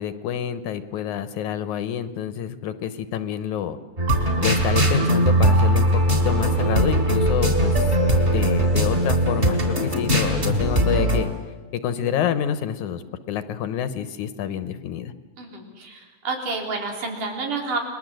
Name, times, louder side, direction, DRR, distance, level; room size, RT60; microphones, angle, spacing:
voice 1, 0.0-3.8 4.4-7.8 8.3-11.3 11.8-15.1, left 9 dB, 75° left, 12 dB, 2.4 m, -28 dB
sound 1, 4.0-11.2, right 1 dB, 20° right, 3.8 m, -20 dB
voice 2, 15.4-17.8, right 3 dB, 90° right, 2 dB, 5.4 m, -29 dB
30.0 x 21.5 x 7.8 m, 1.4 s
omnidirectional pair, 3.6 m